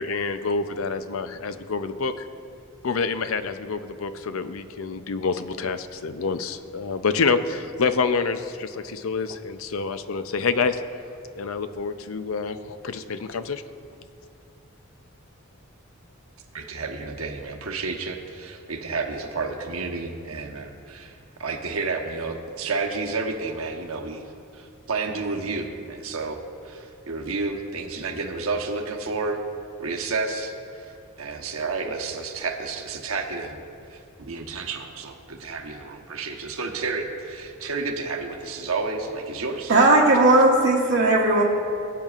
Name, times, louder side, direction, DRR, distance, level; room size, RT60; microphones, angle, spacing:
voice 1, 0.0-2.1 2.8-10.8 11.4-13.6, left 4 dB, 75° left, 10 dB, 0.5 m, -27 dB
voice 2, 16.5-21.1 21.4-24.2 24.5-26.4 26.6-29.4 29.8-30.5 31.2-33.6 33.9-39.8, right 4 dB, 85° right, 2 dB, 1.0 m, -30 dB
voice 3, 39.7-41.4, right 2 dB, 65° right, -5 dB, 1.0 m, -17 dB
19.0 x 8.9 x 2.4 m, 2.5 s
head